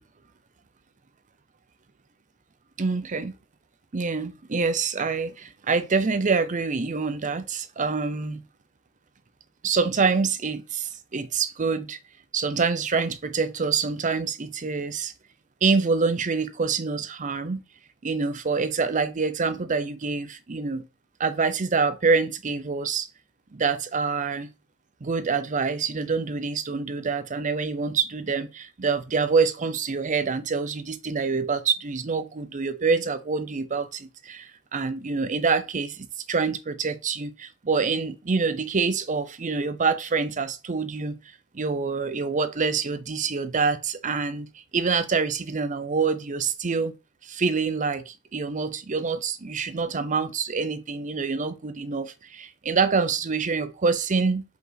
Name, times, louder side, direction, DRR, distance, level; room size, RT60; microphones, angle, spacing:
voice 1, 2.8-3.4 3.9-8.4 9.6-12.0 12.3-15.1 15.6-17.6 18.0-20.9 21.2-23.1 23.5-24.5 25.0-41.2 41.5-44.5 44.7-46.9 47.2-54.4, right 4 dB, 35° right, 0.6 m, -26 dB
5.1 x 5.0 x 4.0 m
head